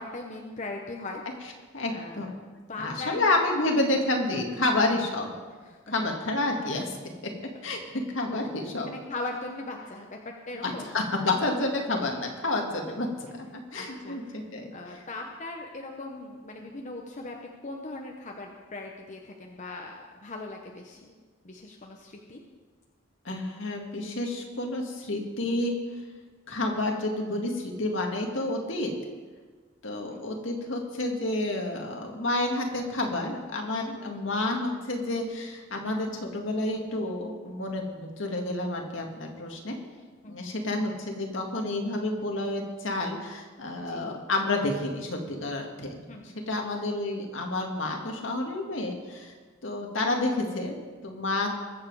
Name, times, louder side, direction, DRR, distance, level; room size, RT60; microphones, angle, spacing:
voice 1, 0.0-1.5 1.9-2.4 2.7-3.3 4.6-4.8 5.6-5.9 8.9-10.2 10.5-11.0 13.8-14.4 14.7-17.3 17.6-21.1 21.4-22.4 30.1-30.2 33.9-34.2 40.2-40.6 43.8-44.1 46.1-46.4, left 2 dB, 40° left, 1 dB, 1.0 m, -39 dB
voice 2, 1.7-2.3 2.8-5.4 5.9-7.0 7.6-7.8 8.1-8.9 10.6-13.1 13.4-15.0 23.3-25.8 26.5-28.9 29.8-39.8 40.3-46.0 46.5-49.3 49.6-50.8 51.0-51.5, left 2 dB, 70° left, 2 dB, 2.0 m, -29 dB
21.5 x 7.5 x 4.8 m, 1.4 s
head